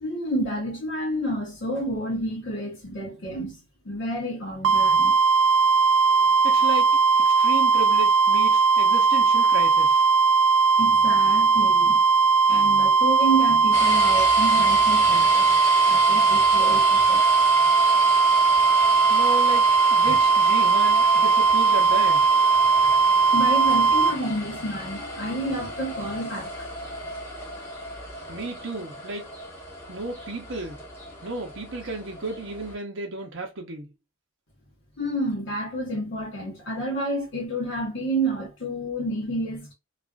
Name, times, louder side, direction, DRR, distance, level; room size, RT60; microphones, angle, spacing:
voice 1, 0.0-3.6 3.8-5.2 10.8-12.0 12.5-15.6 15.9-17.3 20.1-20.2 22.6-26.5 35.0-39.7, right 1 dB, 65° left, 0.8 m, -30 dB
sound 1, 4.6-24.2, right 4 dB, 90° right, 0.3 m, -19 dB
voice 2, 6.4-10.1 19.1-22.3 28.3-29.3 29.9-30.8 31.2-33.9, right 3 dB, 65° right, 0.7 m, -33 dB
sound 2, 13.7-32.7, left 1 dB, 15° left, 1.0 m, -33 dB
2.4 x 2.4 x 2.2 m
head